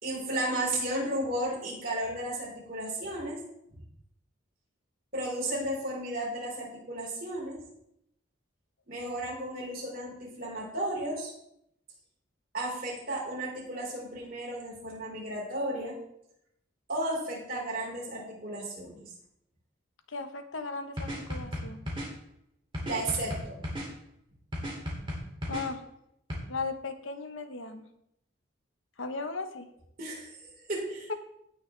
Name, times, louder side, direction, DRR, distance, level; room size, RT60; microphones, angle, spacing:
voice 1, 0.0-3.4 5.1-7.6 8.9-11.3 12.5-16.0 16.9-19.1 22.8-23.6 30.0-31.1, right 1 dB, 45° right, -4 dB, 4.3 m, -34 dB
voice 2, 20.1-21.8 25.5-25.8 26.5-27.8 29.0-29.7 31.1-31.2, left 3 dB, 75° left, 8 dB, 1.1 m, -36 dB
sound 1, 21.0-22.1 22.7-23.9 24.5-25.6 26.3-26.4, equal, 25° right, 2.7 m, -34 dB
17.5 x 6.4 x 3.3 m, 0.78 s
head